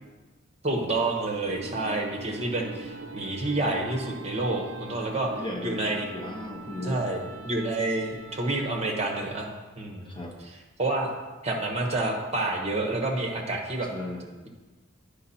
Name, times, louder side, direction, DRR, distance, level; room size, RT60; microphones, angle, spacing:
voice 1, 0.6-5.3 5.6-6.1 6.8-9.5 9.8-11.1 11.4-13.9, right 2 dB, 30° right, 1 dB, 1.2 m, -29 dB
sound 1, 1.5-9.7, right 3 dB, 65° right, 0.5 m, -42 dB
voice 2, 5.3-5.9 6.1-7.1 10.1-10.4 13.9-14.3, left 1 dB, 25° left, 0 dB, 0.8 m, -36 dB
10.0 x 5.3 x 4.3 m, 1.3 s
head